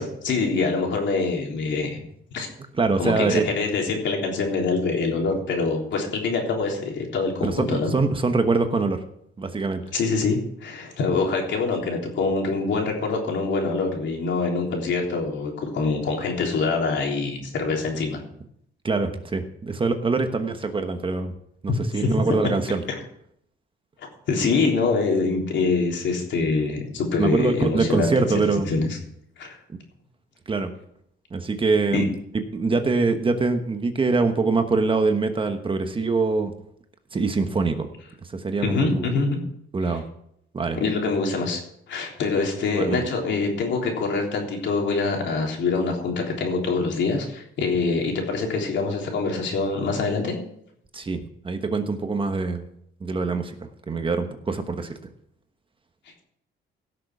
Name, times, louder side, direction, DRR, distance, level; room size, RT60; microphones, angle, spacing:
voice 1, 0.0-2.0 2.3-2.5 3.0-7.9 9.9-18.2 21.7-22.2 22.9-23.0 24.0-29.0 29.4-29.6 31.9-32.0 38.6-39.4 39.8-40.0 40.8-41.6 41.9-50.4, left 4 dB, 65° left, 1 dB, 3.5 m, -25 dB
voice 2, 2.8-3.4 7.4-7.6 7.9-9.0 9.4-9.8 18.8-21.3 21.6-22.8 27.2-28.7 30.5-30.7 31.3-32.1 32.5-36.5 37.1-37.9 38.2-39.1 39.7-40.0 40.5-40.8 42.7-43.0 50.9-52.7 53.0-53.5 53.9-54.9, right 4 dB, 25° right, 7 dB, 1.2 m, -24 dB
16.5 x 6.8 x 6.1 m, 0.72 s
cardioid pair, 125°, 20 cm